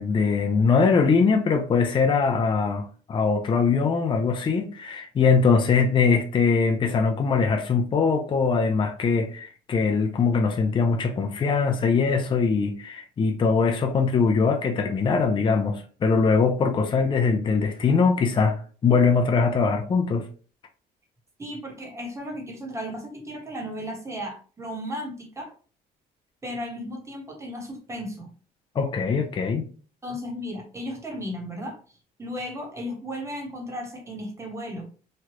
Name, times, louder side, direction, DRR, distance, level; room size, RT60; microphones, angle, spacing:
voice 1, 0.0-20.2 28.8-29.7, left 5 dB, 30° left, 0.5 m, -22 dB
voice 2, 21.4-25.5 26.4-28.3 30.0-31.8 32.2-34.9, equal, 15° right, 1.1 m, -35 dB
3.1 x 2.3 x 2.9 m
cardioid pair, 110°, 17 cm